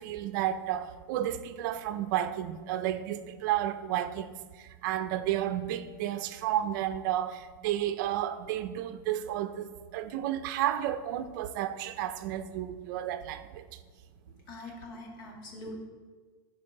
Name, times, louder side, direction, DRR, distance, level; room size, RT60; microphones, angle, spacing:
voice 1, 0.0-4.3 4.8-9.7 9.9-13.6, right 12 dB, 55° right, 0.5 m, -32 dB
voice 2, 14.5-15.7, left 2 dB, 60° left, 2.1 m, -43 dB
11.5 x 4.7 x 3.7 m
supercardioid pair, 140°, 12 cm